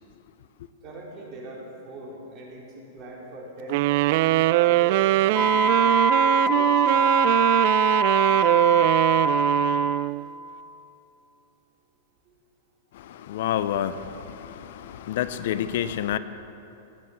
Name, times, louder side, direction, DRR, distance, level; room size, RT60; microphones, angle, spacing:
voice 1, 0.8-3.9 4.6-7.4 8.2-8.7 12.2-12.3, right 2 dB, 35° right, 4.8 m, -41 dB
sound 1, 3.7-10.2, right 16 dB, 55° right, 0.4 m, -21 dB
Wind instrument woodwind instrument, 5.3-10.1, right 2 dB, ahead, 1.1 m, -23 dB
voice 2, 12.9-16.2, left 10 dB, 65° left, 0.7 m, -29 dB
17.0 x 10.0 x 7.6 m
hypercardioid pair, 115°, 0 cm